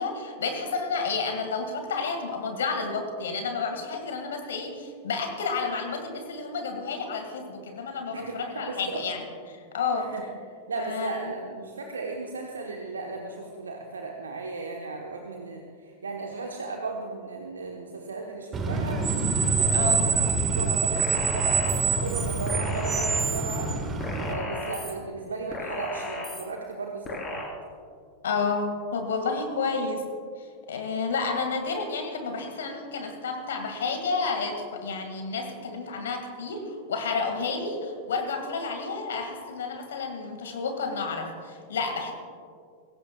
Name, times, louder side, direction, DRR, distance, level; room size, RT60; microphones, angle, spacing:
voice 1, 0.0-9.2 9.7-10.1 10.8-11.3 19.7-20.1 28.2-30.0 30.7-42.1, left 4 dB, 65° left, 5 dB, 2.0 m, -30 dB
voice 2, 8.1-9.0 9.9-10.2 10.7-19.1 19.5-20.1 20.5-23.7 24.2-27.5, right 3 dB, 70° right, 1 dB, 1.1 m, -35 dB
Screech, 18.5-24.3, right 4 dB, 25° right, 1.7 m, -25 dB
sound 1, 21.0-21.8 22.5-23.4 24.0-24.9 25.5-26.4 27.1-27.4, left 2 dB, 20° left, 4.3 m, -35 dB
22.0 x 17.0 x 2.4 m, 2.2 s
figure-of-eight pair, 90°, 0 cm